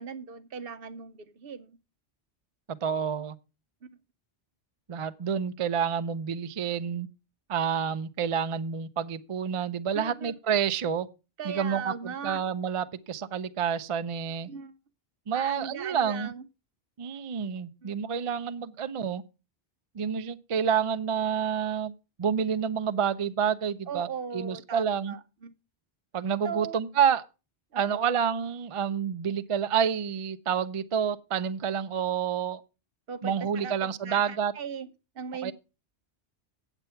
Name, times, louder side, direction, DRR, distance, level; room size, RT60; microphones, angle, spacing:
voice 1, 0.0-1.8 3.8-3.9 9.9-10.3 11.4-12.4 14.5-14.7 15.3-16.4 17.8-17.9 23.9-25.5 26.4-26.8 27.7-28.1 33.1-34.9 35.1-35.5, right 6 dB, 65° right, 0.9 m, -38 dB
voice 2, 2.7-3.4 4.9-7.1 7.5-11.1 11.4-14.5 15.3-16.3 17.0-19.2 19.9-24.1 24.3-25.2 26.1-27.2 27.8-32.6 33.2-34.5 35.4-35.5, right 7 dB, 45° right, 0.4 m, -29 dB
8.2 x 8.0 x 5.5 m
omnidirectional pair, 1.1 m